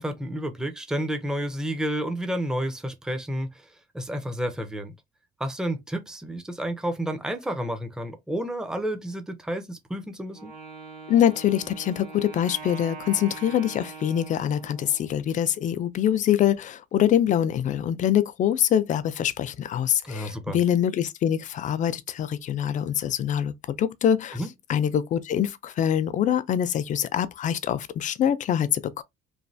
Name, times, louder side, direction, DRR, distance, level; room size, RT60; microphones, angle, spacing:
voice 1, 0.0-3.7 3.9-4.9 5.4-10.5 20.0-20.6 24.3-24.5, equal, 5° right, 0.5 m, -30 dB
Wind instrument woodwind instrument, 10.3-15.2, right 5 dB, 55° right, 1.5 m, -42 dB
voice 2, 11.1-24.4 24.7-29.0, left 10 dB, 50° left, 0.4 m, -24 dB
3.2 x 2.2 x 2.6 m
cardioid pair, 110°, 17 cm